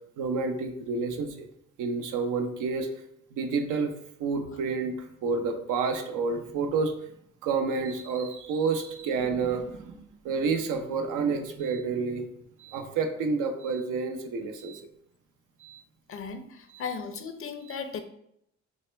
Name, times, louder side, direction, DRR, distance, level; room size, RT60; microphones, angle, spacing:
voice 1, 0.2-1.5 1.8-2.9 3.3-3.9 4.2-7.1 7.4-10.0 10.2-12.3 12.6-14.8 15.6-15.8 17.7-17.8, right 4 dB, 85° right, 5 dB, 0.7 m, -29 dB
voice 2, 16.1-18.0, left 6 dB, 45° left, 8 dB, 0.6 m, -36 dB
6.3 x 2.1 x 3.3 m, 0.74 s
cardioid pair, 90°, 30 cm